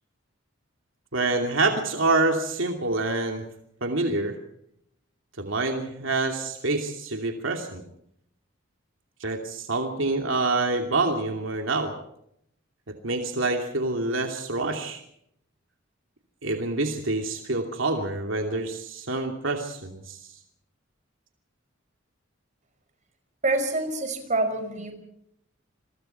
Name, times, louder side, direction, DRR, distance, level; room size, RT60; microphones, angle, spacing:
voice 1, 1.1-3.4 3.8-4.4 5.4-7.8 9.2-11.9 13.0-15.0 16.4-20.2, right 2 dB, 75° right, 3 dB, 2.7 m, -26 dB
voice 2, 23.4-24.9, right 2 dB, 40° right, 8 dB, 5.1 m, -26 dB
28.5 x 22.5 x 4.5 m, 0.74 s
head